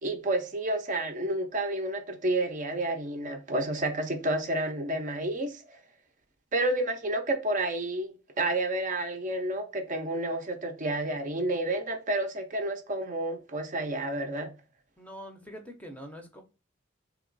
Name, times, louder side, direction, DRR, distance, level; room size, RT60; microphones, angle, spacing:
voice 1, 0.0-5.8 6.5-14.5, right 1 dB, 40° right, 0.6 m, -30 dB
voice 2, 15.0-16.4, equal, 5° left, 0.6 m, -44 dB
2.9 x 2.9 x 3.9 m
head